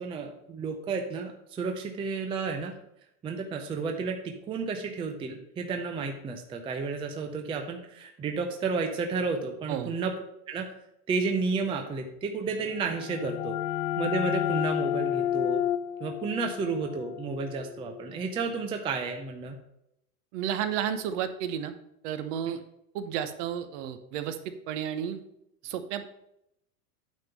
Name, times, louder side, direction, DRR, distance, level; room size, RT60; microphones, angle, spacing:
voice 1, 0.0-2.7 3.2-10.1 10.5-10.7 11.1-13.6 14.0-15.6 16.0-19.6, right 4 dB, 10° right, 4 dB, 0.5 m, -32 dB
sound 1, 12.7-18.2, left 11 dB, 85° left, 0.6 m, -31 dB
voice 2, 20.3-21.7 22.0-22.6 22.9-25.2 25.6-26.1, right 9 dB, 50° right, 10 dB, 1.0 m, -32 dB
9.1 x 3.7 x 6.7 m, 0.79 s
supercardioid pair, 140°, 46 cm